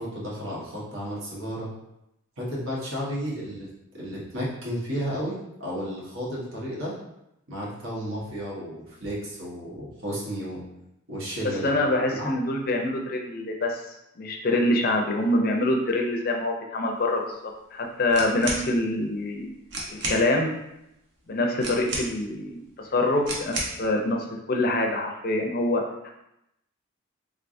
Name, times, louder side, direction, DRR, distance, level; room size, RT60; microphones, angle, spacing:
voice 1, 0.0-1.7 2.4-3.7 4.0-6.9 7.5-10.6 11.1-11.7 12.1-12.3, equal, 80° right, -5 dB, 1.2 m, -33 dB
voice 2, 11.6-17.4 17.7-19.5 19.9-20.5 21.3-26.1, left 1 dB, 45° left, 2 dB, 0.5 m, -25 dB
sound 1, 18.1-18.7 19.4-19.5 19.7-20.2 21.6-22.3 23.2-23.8, right 2 dB, 60° right, 0.8 m, -31 dB
3.7 x 3.4 x 2.6 m, 0.86 s
head